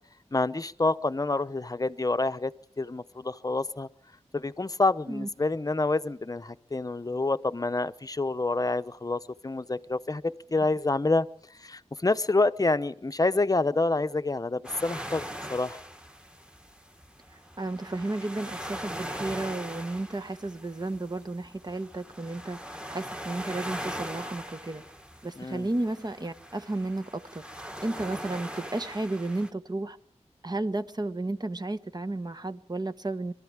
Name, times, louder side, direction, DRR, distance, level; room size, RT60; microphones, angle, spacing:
voice 1, 0.3-3.9 4.3-11.3 11.6-15.2 15.5-15.8 25.4-25.7, left 3 dB, 30° left, 0.8 m, -27 dB
sound 1, 14.6-29.5, equal, 10° right, 1.6 m, -41 dB
voice 2, 17.6-22.6 22.9-24.8 25.2-27.4 27.8-30.0 30.4-33.3, right 2 dB, 35° right, 1.1 m, -33 dB
23.5 x 13.0 x 8.7 m
wide cardioid pair, 75°, 12 cm